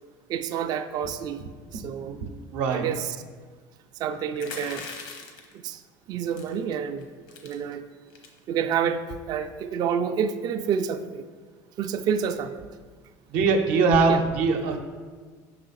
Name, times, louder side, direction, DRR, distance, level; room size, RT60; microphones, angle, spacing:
voice 1, 0.3-1.4 1.7-2.2 2.7-3.2 4.0-4.9 5.5-5.8 6.1-7.1 7.4-7.8 8.5-11.2 11.8-12.6 14.1-14.3, right 7 dB, 45° right, 9 dB, 0.3 m, -28 dB
voice 2, 2.5-2.8 13.3-14.8, right 4 dB, 80° right, 5 dB, 0.7 m, -22 dB
sound 1, 4.4-5.5 6.3-6.6 7.0-7.1 7.3-7.5 8.1-8.4, left 4 dB, 80° left, 1.1 m, -39 dB
5.7 x 4.8 x 4.0 m, 1.5 s
cardioid pair, 130°, 10 cm